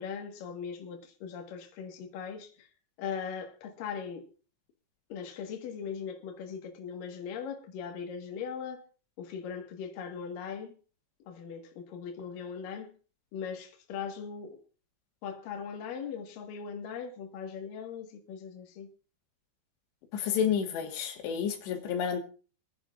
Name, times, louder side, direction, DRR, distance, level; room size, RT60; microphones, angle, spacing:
voice 1, 0.0-2.7 3.0-4.3 5.1-8.8 9.2-10.8 11.3-13.0 13.3-14.6 15.2-18.9, left 6 dB, 60° left, 2.8 m, -39 dB
voice 2, 20.1-22.2, left 8 dB, 85° left, 3.6 m, -30 dB
25.5 x 10.0 x 2.4 m
omnidirectional pair, 5.0 m